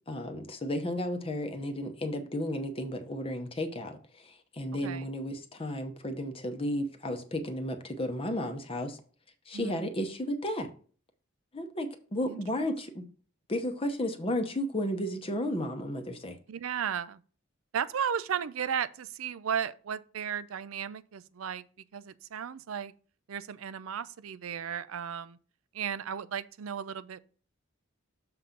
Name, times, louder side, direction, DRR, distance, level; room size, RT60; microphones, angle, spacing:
voice 1, 0.1-9.0 9.5-10.7 11.5-13.1 13.5-16.4, left 1 dB, 25° left, 0.8 m, -33 dB
voice 2, 16.5-17.2 17.7-21.6 21.9-22.9 23.3-25.4 25.7-27.2, right 8 dB, 75° right, 0.4 m, -35 dB
6.8 x 3.8 x 5.7 m
head